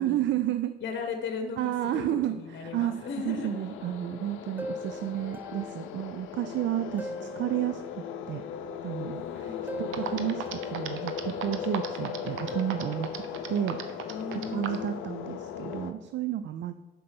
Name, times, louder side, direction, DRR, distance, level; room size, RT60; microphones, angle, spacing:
voice 1, 0.0-0.8 1.6-2.3 2.7-2.9 3.2-7.8 8.3-8.4 8.8-9.5 9.8-13.2 13.5-14.0 14.3-16.7, right 11 dB, 65° right, 11 dB, 0.4 m, -31 dB
voice 2, 0.8-3.5 9.3-9.6 14.1-15.1, left 5 dB, 65° left, 5 dB, 1.0 m, -37 dB
sound 1, 2.4-15.9, left 8 dB, 85° left, 0.6 m, -38 dB
sound 2, 3.2-3.3 4.6-5.9 6.2-6.3 7.0-8.1 9.7-10.9 12.5-13.4, equal, 10° right, 0.6 m, -41 dB
sound 3, 9.6-9.7 9.9-14.9, right 9 dB, 90° right, 0.8 m, -36 dB
7.6 x 5.3 x 6.0 m, 1.2 s
cardioid pair, 90°, 20 cm